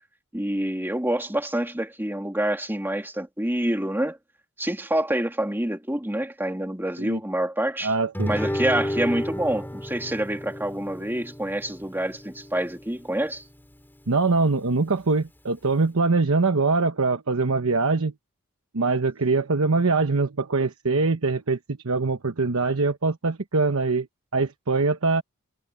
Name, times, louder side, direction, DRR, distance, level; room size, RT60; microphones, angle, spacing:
voice 1, 0.3-4.2 4.6-7.9 8.3-13.5, right 1 dB, 10° right, 2.3 m, -27 dB
voice 2, 7.8-8.3 14.1-18.1 18.7-24.1 24.3-25.2, right 3 dB, 80° right, 1.0 m, -23 dB
Guitar, 8.1-13.2, equal, 10° left, 2.9 m, -32 dB
head